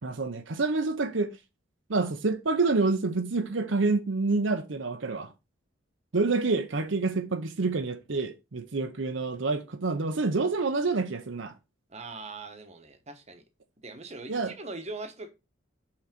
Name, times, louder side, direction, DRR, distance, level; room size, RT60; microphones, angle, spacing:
voice 1, 0.0-1.3 1.9-5.3 6.1-11.5 14.3-14.5, right 3 dB, 80° right, 0.8 m, -27 dB
voice 2, 11.9-13.4 13.8-15.3, right 3 dB, 35° right, 1.1 m, -41 dB
5.8 x 4.0 x 5.8 m
head